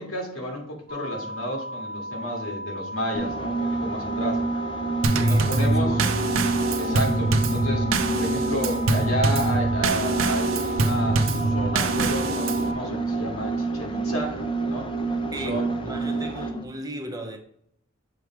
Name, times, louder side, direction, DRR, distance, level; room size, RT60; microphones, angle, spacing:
voice 1, 0.0-4.4 5.2-5.9 6.8-7.9 8.1-14.4 14.7-14.9 15.4-15.7, equal, 85° left, 2.0 m, -31 dB
Nashville TN Outdoor Sirens Tested, 0.9-12.8, equal, 40° right, 1.0 m, -36 dB
sound 1, 3.1-16.7, right 3 dB, 25° left, 0.5 m, -28 dB
Drum kit / Snare drum / Bass drum, 5.0-12.7, right 2 dB, 70° right, 0.5 m, -24 dB
voice 2, 5.2-6.4 15.3-17.4, right 1 dB, 20° right, 0.7 m, -36 dB
6.8 x 3.3 x 4.7 m
head